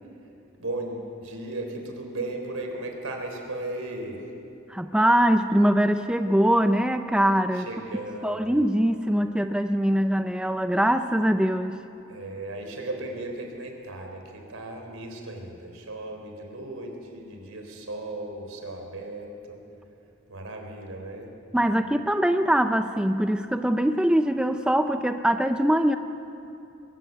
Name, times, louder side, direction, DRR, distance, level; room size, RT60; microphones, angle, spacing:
voice 1, 0.6-4.2 7.5-8.6 12.1-19.6 20.3-21.3, right 2 dB, 80° right, 3 dB, 3.6 m, -36 dB
voice 2, 4.7-7.7 8.2-11.8 21.5-26.0, equal, 5° right, 8 dB, 0.4 m, -22 dB
21.5 x 15.0 x 9.3 m, 2.8 s
head